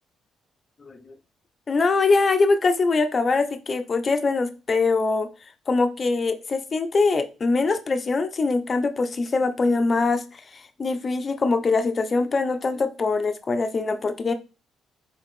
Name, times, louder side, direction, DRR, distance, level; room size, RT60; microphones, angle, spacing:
voice 1, 1.7-5.3 5.7-10.4 10.8-14.3, left 3 dB, 35° left, 9 dB, 0.6 m, -23 dB
4.0 x 3.4 x 3.1 m, 0.31 s
cardioid pair, 90°, 0 cm